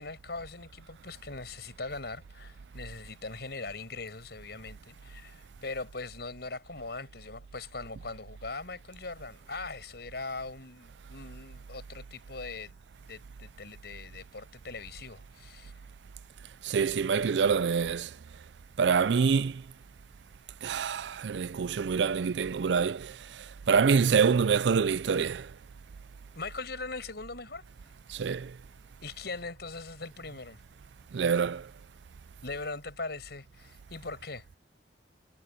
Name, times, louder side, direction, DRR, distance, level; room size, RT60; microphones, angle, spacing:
voice 1, 0.0-12.7 13.1-15.7 26.3-27.6 29.0-30.6 32.4-34.6, left 3 dB, 65° left, 6.9 m, -41 dB
voice 2, 16.6-18.1 18.8-19.6 20.6-25.5 28.1-28.5 31.1-31.7, right 6 dB, 85° right, 0.4 m, -26 dB
head